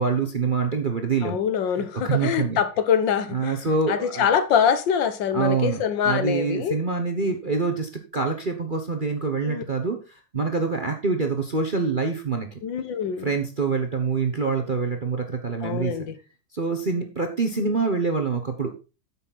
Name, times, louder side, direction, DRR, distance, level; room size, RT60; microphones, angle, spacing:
voice 1, 0.0-1.4 2.0-2.6 3.3-4.3 5.3-10.0 10.3-12.5 13.2-15.9 16.5-18.7, right 4 dB, 35° right, 0.9 m, -25 dB
voice 2, 1.2-3.6 3.9-6.8 9.4-9.6 12.6-13.3 15.6-16.1, left 8 dB, 70° left, 1.7 m, -24 dB
9.8 x 7.4 x 4.1 m
omnidirectional pair, 2.2 m